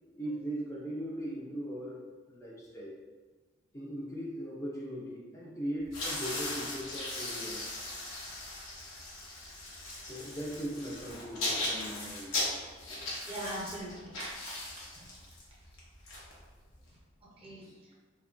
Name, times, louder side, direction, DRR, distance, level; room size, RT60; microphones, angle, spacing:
voice 1, 0.1-2.0 2.3-3.0 3.7-7.7 10.1-12.5 17.6-17.7, equal, 15° left, -5 dB, 0.4 m, -39 dB
sound 1, 5.8-16.9, left 2 dB, 85° left, 0.7 m, -38 dB
voice 2, 13.3-15.1 17.2-17.7, right 1 dB, 30° right, -5 dB, 0.6 m, -42 dB
2.8 x 2.2 x 2.4 m, 1.4 s
head